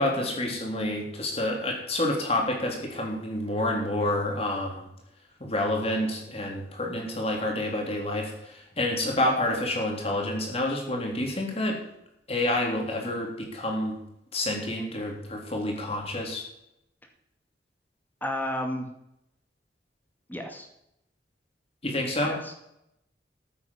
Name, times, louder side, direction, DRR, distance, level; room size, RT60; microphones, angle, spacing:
voice 1, 0.0-4.9 5.4-11.8 12.3-14.0 14.3-16.5 21.8-22.4, left 1 dB, 35° left, 1 dB, 3.7 m, -28 dB
voice 2, 18.2-18.9 20.3-20.7 22.2-22.5, left 1 dB, 10° left, 3 dB, 2.2 m, -32 dB
14.0 x 8.3 x 7.1 m, 0.81 s
head